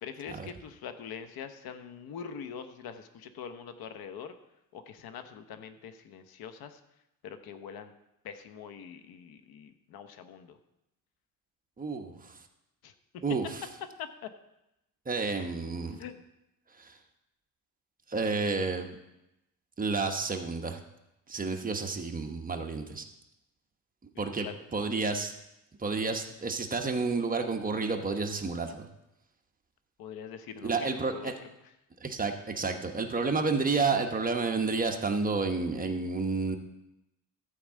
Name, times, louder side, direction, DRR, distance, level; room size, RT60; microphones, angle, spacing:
voice 1, 0.0-4.3 4.7-6.8 7.2-7.9 8.2-10.6 12.8-13.2 14.0-14.3 16.0-16.2 24.1-24.5 30.0-31.3, left 7 dB, 75° left, 9 dB, 1.0 m, -43 dB
voice 2, 11.8-12.3 13.2-13.5 15.1-16.0 16.8-17.0 18.1-19.0 19.8-20.8 21.3-23.0 24.2-25.3 25.8-28.8 30.6-31.3 32.0-36.6, right 4 dB, 25° right, 4 dB, 1.1 m, -30 dB
12.5 x 4.7 x 7.5 m, 0.89 s
cardioid pair, 110°, 37 cm